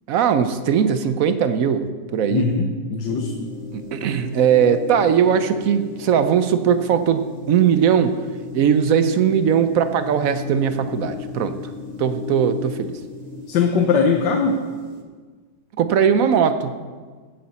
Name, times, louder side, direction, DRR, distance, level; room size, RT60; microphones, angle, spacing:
voice 1, 0.1-1.9 2.1-2.4 3.7-8.2 8.5-11.5 12.0-12.9 15.8-16.7, right 8 dB, 65° right, 10 dB, 0.9 m, -19 dB
voice 2, 2.3-3.5 13.5-14.6, left 5 dB, 75° left, 3 dB, 1.5 m, -20 dB
sound 1, 3.1-15.0, left 6 dB, 30° right, 0.9 m, -36 dB
16.0 x 8.7 x 4.2 m, 1.5 s
omnidirectional pair, 1.9 m